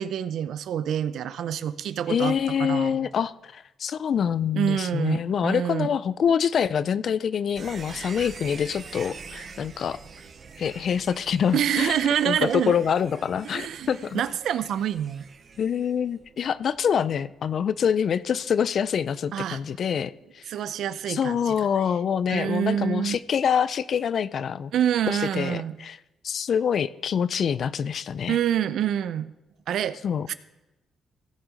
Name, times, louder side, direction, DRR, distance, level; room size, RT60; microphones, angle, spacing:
voice 1, 0.0-3.1 4.5-5.9 11.5-12.8 13.4-13.9 14.1-15.3 19.3-19.6 20.5-21.5 22.3-23.2 24.7-25.7 28.3-29.3 29.7-30.0 30.3-30.4, right 9 dB, 75° right, 14 dB, 0.5 m, -26 dB
voice 2, 2.1-10.0 10.6-12.0 12.3-14.2 15.6-20.5 21.1-24.7 25.1-26.0 26.2-28.4 30.0-30.3, left 7 dB, 55° left, 17 dB, 0.4 m, -26 dB
sound 1, 7.6-18.4 18.7-18.8, right 5 dB, 50° right, 1.0 m, -45 dB
16.0 x 6.2 x 5.0 m, 1.0 s
cardioid pair, 90°, 0 cm